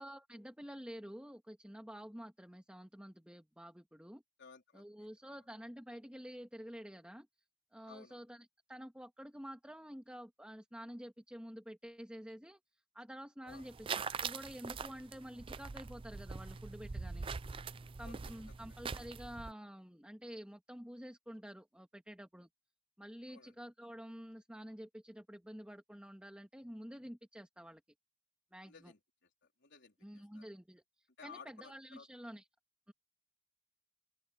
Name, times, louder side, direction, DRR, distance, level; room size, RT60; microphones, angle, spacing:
voice 1, 0.0-4.2 4.7-7.3 7.7-12.6 12.9-17.3 18.0-22.5 23.0-27.8 28.5-28.9 30.0-32.5 32.9-33.0, equal, 5° right, 1.6 m, -49 dB
voice 2, 4.4-5.4 7.8-8.2 13.4-13.7 18.0-18.2 18.5-18.6 23.3-23.5 28.6-29.3 29.6-30.4 31.2-32.1, left 5 dB, 55° left, 3.8 m, -57 dB
sound 1, 13.5-19.5, right 5 dB, 25° right, 0.4 m, -43 dB
open air
head